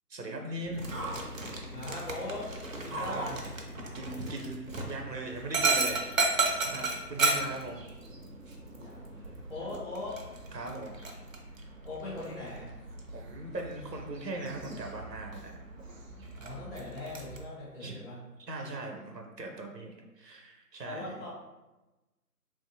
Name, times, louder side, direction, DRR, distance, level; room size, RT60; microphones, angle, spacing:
voice 1, 0.1-0.9 2.9-3.4 3.9-7.8 10.5-11.0 13.1-15.5 17.8-18.0 18.5-21.1, right 2 dB, 85° right, 2 dB, 0.8 m, -40 dB
sound 1, 0.6-12.7 13.1-13.2, left 1 dB, 85° left, 1.0 m, -50 dB
Dog, 0.7-17.4, right 3 dB, 55° right, 0.5 m, -35 dB
voice 2, 1.7-2.5 2.8-3.4 6.7-7.3 8.7-10.2 11.8-12.7 16.4-18.2 20.8-21.3, left 2 dB, 40° left, -10 dB, 0.9 m, -41 dB
3.0 x 2.6 x 2.5 m, 1.1 s
figure-of-eight pair, 155°, 48 cm